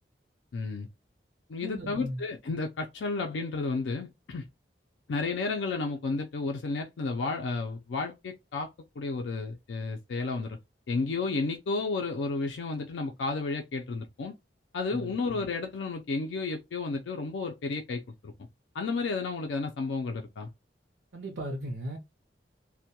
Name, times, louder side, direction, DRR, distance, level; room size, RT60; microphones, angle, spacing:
voice 1, 0.5-0.9 1.5-4.4 5.1-8.7 9.0-10.6 10.9-14.3 14.7-18.3 18.7-20.5, left 3 dB, 90° left, 0.4 m, -32 dB
voice 2, 1.6-2.2 14.9-15.1 21.1-22.0, right 1 dB, 85° right, 0.6 m, -36 dB
2.2 x 2.1 x 2.7 m
head